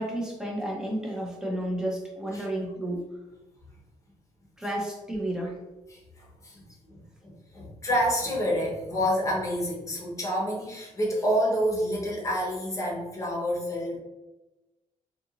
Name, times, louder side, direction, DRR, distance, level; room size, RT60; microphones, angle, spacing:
voice 1, 0.0-3.1 4.6-5.6, right 1 dB, 5° right, -2 dB, 0.7 m, -31 dB
voice 2, 5.9-14.0, equal, 25° left, -3 dB, 0.8 m, -28 dB
2.8 x 2.5 x 2.8 m, 1.1 s
wide cardioid pair, 140°, 14 cm